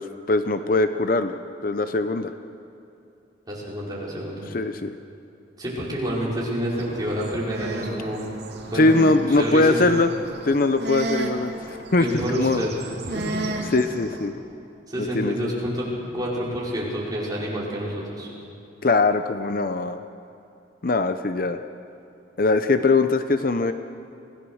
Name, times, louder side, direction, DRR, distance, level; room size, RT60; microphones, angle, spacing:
voice 1, 0.0-1.3 1.6-2.3 4.5-5.0 8.7-10.1 10.4-12.6 13.7-14.3 15.0-15.5 18.8-20.0 20.8-21.6 22.4-23.7, left 3 dB, 50° left, 9 dB, 0.7 m, -21 dB
voice 2, 3.5-4.5 5.6-8.3 8.6-8.9 9.4-9.8 12.0-12.7 13.0-13.5 14.9-15.9 16.1-18.3, equal, 20° right, -6 dB, 5.2 m, -28 dB
sound 1, 6.7-14.3, right 2 dB, 65° right, 2.6 m, -34 dB
25.0 x 17.5 x 6.4 m, 2.8 s
head